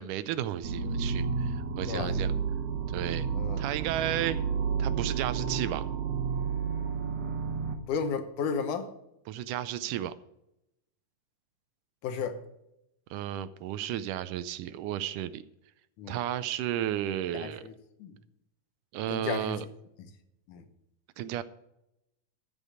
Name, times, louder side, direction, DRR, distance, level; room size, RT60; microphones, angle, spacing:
voice 1, 0.0-2.3 2.9-3.3 3.6-4.4 4.8-5.8 9.3-10.1 13.1-15.4 16.1-17.6 18.9-19.7 21.2-21.4, right 11 dB, 80° right, 13 dB, 2.1 m, -33 dB
sound 1, 0.6-7.8, right 6 dB, 60° right, 2.2 m, -31 dB
voice 2, 3.3-3.7 7.9-8.9 12.0-12.4 16.0-16.2 17.3-18.2 19.1-19.6 20.5-20.7, left 6 dB, 75° left, 8 dB, 2.5 m, -33 dB
13.5 x 5.5 x 8.5 m, 0.84 s
omnidirectional pair, 3.8 m